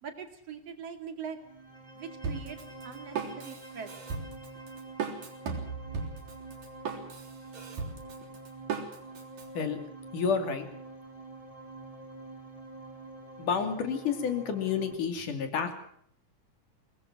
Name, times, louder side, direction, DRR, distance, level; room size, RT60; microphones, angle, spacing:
voice 1, 0.0-1.4 1.9-2.6 2.8-3.9, right 7 dB, 55° right, 7 dB, 3.3 m, -42 dB
sound 1, 1.4-14.9, right 2 dB, 10° right, 3.0 m, -47 dB
Drum kit, 2.2-9.5, right 5 dB, 85° right, 5.2 m, -37 dB
voice 2, 10.1-10.7 13.4-15.7, left 6 dB, 80° left, 7 dB, 4.3 m, -30 dB
23.0 x 20.0 x 6.0 m, 0.66 s
omnidirectional pair, 3.6 m